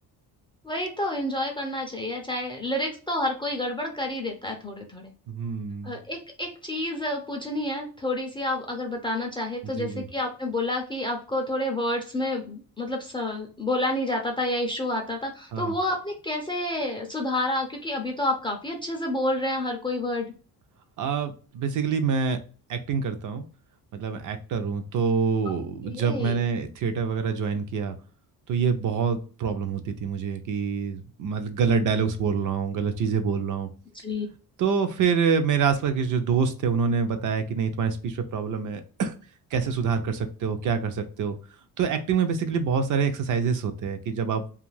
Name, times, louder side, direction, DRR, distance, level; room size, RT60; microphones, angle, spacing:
voice 1, 0.6-5.1 5.8-20.3 25.5-25.6 25.9-26.4 34.0-34.3, left 1 dB, 15° left, 1 dB, 0.3 m, -29 dB
voice 2, 5.3-6.0 9.8-10.1 15.5-15.7 21.0-22.4 22.7-23.4 23.9-28.0 28.5-33.7 34.6-39.1 39.5-41.4 41.8-44.4, right 6 dB, 55° right, 8 dB, 0.5 m, -26 dB
2.5 x 2.4 x 3.1 m, 0.38 s
cardioid pair, 175°, 38 cm